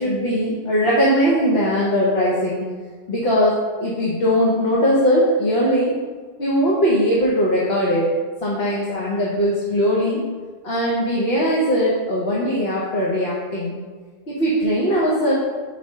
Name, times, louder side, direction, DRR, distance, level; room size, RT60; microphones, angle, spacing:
voice 1, 0.0-2.7 3.1-6.0 6.4-8.1 8.4-10.2 10.6-13.8 14.3-15.3, equal, 50° left, -5 dB, 1.1 m, -20 dB
5.2 x 4.2 x 5.5 m, 1.4 s
omnidirectional pair, 1.3 m